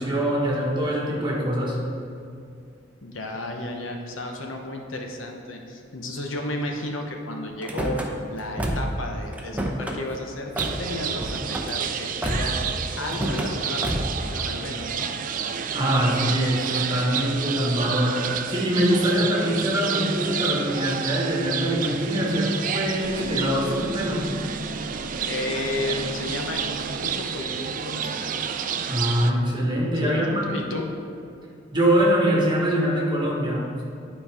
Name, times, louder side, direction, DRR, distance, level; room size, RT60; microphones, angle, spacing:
voice 1, 0.0-1.8 15.7-24.3 28.9-30.5 31.7-33.8, equal, 25° right, -3 dB, 1.4 m, -23 dB
voice 2, 3.0-12.6 13.0-15.1 25.2-28.3 29.9-30.9, left 2 dB, 90° left, 2 dB, 0.9 m, -33 dB
Car / Slam, 7.6-8.1 8.6-9.0 9.3-10.0 10.6-10.8 11.2-11.7 12.2-12.6 13.1-13.5 13.8-14.2, equal, 10° right, 0.7 m, -28 dB
sound 1, 10.6-29.3, right 7 dB, 45° right, 0.4 m, -30 dB
sound 2, 23.0-29.1, right 2 dB, 80° right, 0.7 m, -40 dB
11.0 x 4.5 x 3.5 m, 2.4 s
head